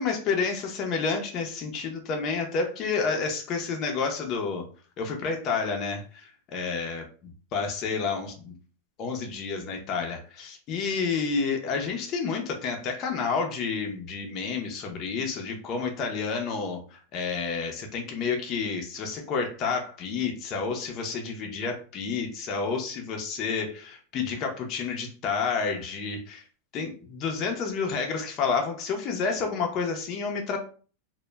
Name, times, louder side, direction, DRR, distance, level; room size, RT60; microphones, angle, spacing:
voice 1, 0.0-4.6 5.0-7.0 7.5-8.5 9.0-26.4 26.7-30.6, left 5 dB, 40° left, 2 dB, 0.5 m, -30 dB
2.1 x 2.0 x 3.2 m, 0.39 s
supercardioid pair, 135°, 0 cm